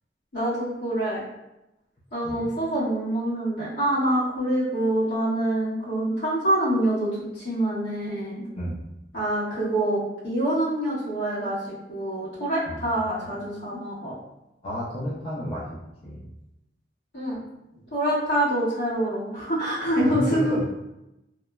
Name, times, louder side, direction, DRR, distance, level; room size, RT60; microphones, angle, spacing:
voice 1, 0.3-1.2 2.1-7.1 7.3-8.4 9.1-14.1 17.1-17.4 17.9-20.6, right 1 dB, 80° left, -9 dB, 1.4 m, -26 dB
voice 2, 8.5-8.9 12.7-12.8 14.6-15.7 16.0-16.3 20.0-20.6, equal, 30° left, -8 dB, 0.5 m, -31 dB
2.9 x 2.1 x 2.3 m, 0.90 s
head